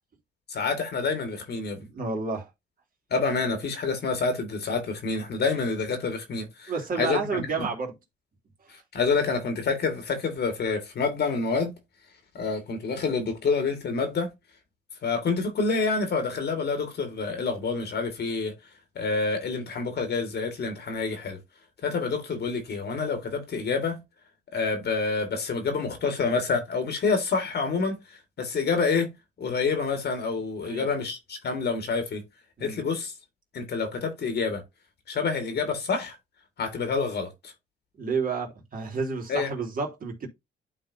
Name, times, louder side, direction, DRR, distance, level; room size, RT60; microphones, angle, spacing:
voice 1, 0.5-1.8 3.1-6.7 7.0-7.7 8.9-11.7 12.3-14.3 15.0-18.5 19.0-21.4 21.8-24.0 24.5-29.1 29.4-32.2 32.6-33.1 33.5-34.6 35.1-36.2 36.6-37.5 39.3-39.5, left 4 dB, 55° left, 1.9 m, -27 dB
voice 2, 1.7-2.5 6.7-8.0 30.6-30.9 32.6-32.8 38.0-40.3, right 4 dB, 45° right, 2.7 m, -30 dB
11.5 x 3.9 x 2.7 m
cardioid pair, 90°, 20 cm